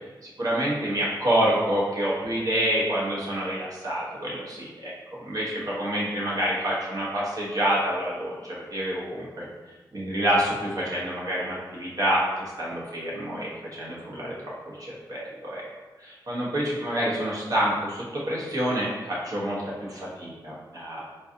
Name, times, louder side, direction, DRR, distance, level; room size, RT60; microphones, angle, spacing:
voice 1, 0.4-9.4 9.9-14.4 14.7-15.6 16.0-21.1, right 1 dB, 50° right, -6 dB, 0.9 m, -27 dB
3.8 x 2.6 x 2.5 m, 1.3 s
wide cardioid pair, 170°, 8 cm